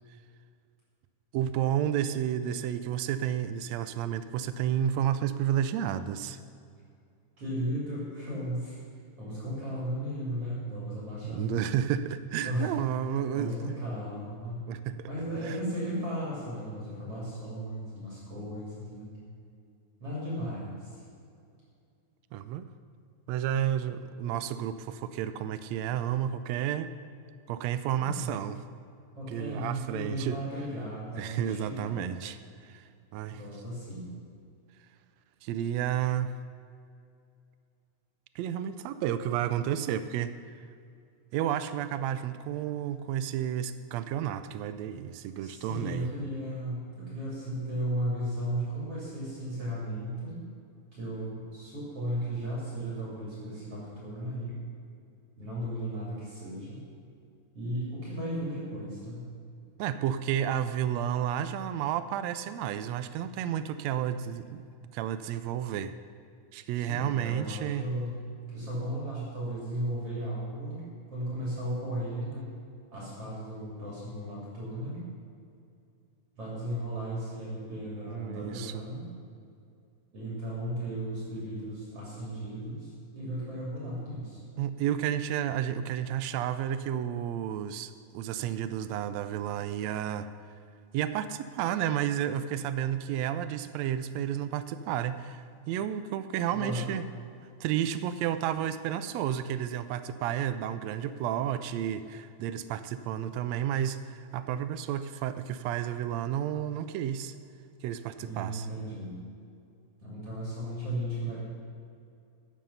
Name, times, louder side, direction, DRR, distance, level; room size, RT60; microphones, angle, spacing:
voice 1, 1.3-6.4 11.2-13.5 14.7-15.1 15.4-15.6 22.3-22.7 23.3-26.9 27.5-28.6 29.3-30.4 31.2-33.4 35.4-36.3 38.3-40.5 41.3-46.1 59.8-65.9 66.5-67.9 78.1-78.8 84.6-90.3 90.9-97.0 97.6-107.4 107.8-108.7, right 10 dB, 80° right, 12 dB, 1.6 m, -31 dB
voice 2, 7.4-8.8 9.2-11.6 12.4-12.7 13.3-14.6 15.0-19.2 20.0-21.0 28.0-28.3 29.2-32.1 33.3-34.1 45.4-50.4 50.9-54.6 55.4-56.8 57.5-59.2 66.7-68.2 68.5-70.8 71.1-72.5 72.9-75.0 76.4-79.0 80.1-84.4 96.5-96.9 108.2-109.2 110.0-111.5, right 1 dB, 50° right, -6 dB, 3.8 m, -35 dB
13.5 x 9.2 x 5.6 m, 2.4 s
omnidirectional pair, 3.5 m